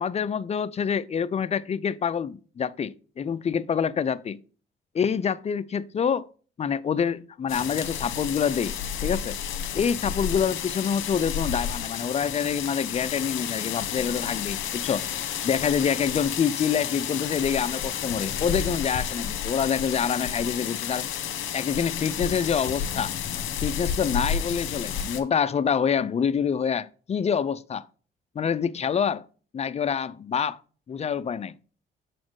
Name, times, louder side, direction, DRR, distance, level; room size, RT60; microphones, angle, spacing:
voice 1, 0.0-4.4 4.9-6.3 6.6-9.4 9.7-15.0 15.4-21.0 21.5-23.1 23.6-27.9 28.4-29.3 29.5-30.6 30.9-31.6, left 7 dB, 35° left, 0.5 m, -26 dB
sound 1, 7.5-25.2, left 8 dB, 80° left, 1.1 m, -31 dB
7.0 x 4.3 x 4.7 m
cardioid pair, 90°, 20 cm